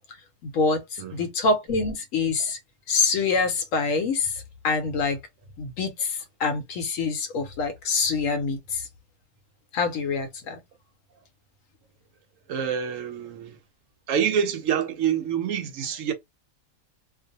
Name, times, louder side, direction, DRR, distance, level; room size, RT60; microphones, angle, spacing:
voice 1, 0.4-0.8 1.1-2.6 2.9-5.2 5.6-8.8 9.7-10.6, left 4 dB, 70° left, 1.0 m, -25 dB
voice 2, 12.5-13.6 14.1-16.1, right 8 dB, 70° right, 0.9 m, -26 dB
2.5 x 2.1 x 2.7 m
omnidirectional pair, 1.5 m